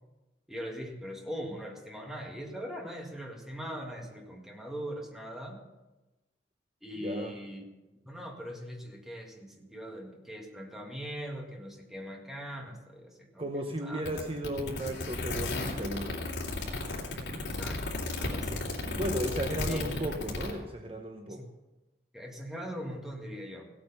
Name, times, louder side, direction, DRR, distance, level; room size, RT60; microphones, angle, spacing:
voice 1, 0.5-5.6 6.8-7.6 8.1-14.0 17.5-17.8 18.2-18.7 19.7-20.0 21.3-21.4 22.1-23.7, equal, ahead, 0 dB, 1.9 m, -41 dB
voice 2, 7.0-7.3 13.4-16.3 18.9-21.4, equal, 30° right, 4 dB, 0.9 m, -35 dB
sound 1, 14.1-20.5, left 2 dB, 75° left, 2.7 m, -34 dB
16.5 x 8.8 x 5.6 m, 1.1 s
head